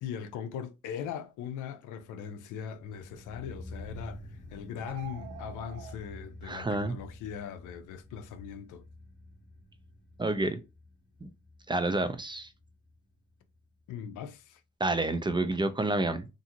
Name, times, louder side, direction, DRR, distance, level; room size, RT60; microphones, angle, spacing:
voice 1, 0.0-4.2 4.5-8.8 13.9-14.6, left 8 dB, 90° left, 0.5 m, -40 dB
sound 1, 2.8-13.6 13.9-14.0, left 1 dB, 40° left, 0.8 m, -49 dB
sound 2, 4.8-6.0, right 10 dB, 65° right, 0.6 m, -45 dB
voice 2, 6.4-7.0 10.2-10.6 11.2-11.3 11.7-12.5 14.8-16.3, right 2 dB, 15° right, 0.3 m, -29 dB
2.6 x 2.5 x 2.8 m
cardioid pair, 90°, 30 cm